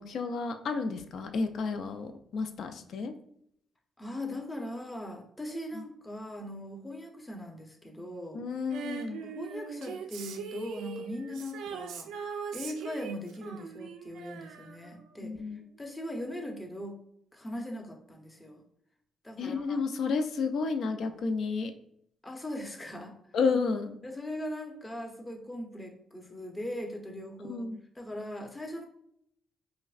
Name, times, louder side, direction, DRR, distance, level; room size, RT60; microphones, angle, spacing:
voice 1, 0.0-3.1 5.7-5.8 8.3-9.3 15.2-15.6 19.4-21.7 23.3-24.0 27.4-27.8, left 4 dB, 65° left, 7 dB, 0.4 m, -31 dB
voice 2, 4.0-8.4 9.3-15.3 15.8-17.0 17.3-18.6 19.2-19.8 22.2-23.2 24.0-27.7 28.0-28.9, left 1 dB, 15° left, 2 dB, 0.7 m, -40 dB
Female singing, 8.7-15.3 15.6-15.7, right 5 dB, 85° right, 0.4 m, -41 dB
4.9 x 2.1 x 2.4 m, 0.71 s
cardioid pair, 90°, 0 cm